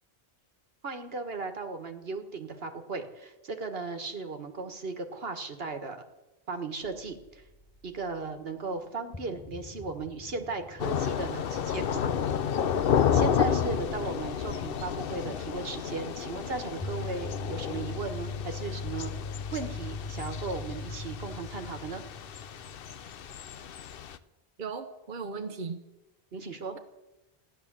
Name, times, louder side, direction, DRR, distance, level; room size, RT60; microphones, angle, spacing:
voice 1, 0.8-6.0 6.5-7.4 7.8-12.0 12.8-19.1 19.5-22.0 26.3-26.8, right 4 dB, 70° right, 7 dB, 1.7 m, -36 dB
sound 1, 6.8-8.3 8.7-8.8 9.1-13.5 16.6-23.7, left 4 dB, 15° left, 0.7 m, -41 dB
Thunder / Rain, 10.8-24.2, left 8 dB, 65° left, 0.9 m, -31 dB
voice 2, 24.6-25.8, right 4 dB, 50° right, 5 dB, 1.1 m, -37 dB
15.0 x 11.0 x 7.4 m, 1.0 s
omnidirectional pair, 1.1 m